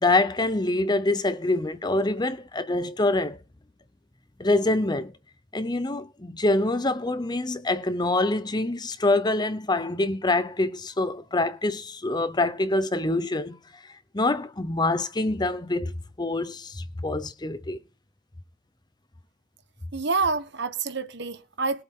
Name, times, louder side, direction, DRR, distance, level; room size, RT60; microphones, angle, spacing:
voice 1, 0.0-3.4 4.4-5.1 5.5-13.6 14.1-17.8, left 2 dB, 20° left, 0.8 m, -25 dB
voice 2, 19.9-21.8, right 4 dB, 60° right, 1.3 m, -27 dB
21.0 x 7.9 x 3.8 m
head